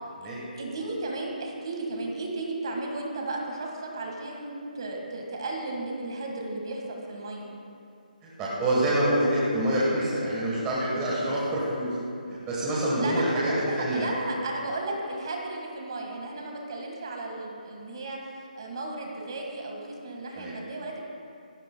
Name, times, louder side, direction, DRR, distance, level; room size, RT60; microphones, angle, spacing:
voice 1, 0.6-7.5 13.0-18.2 18.6-21.0, right 2 dB, 30° right, 0 dB, 1.7 m, -34 dB
voice 2, 8.2-11.9 12.3-14.1 20.3-20.5, right 1 dB, 10° right, -7 dB, 1.2 m, -26 dB
18.0 x 16.0 x 2.2 m, 2.6 s
hypercardioid pair, 180°, 5 cm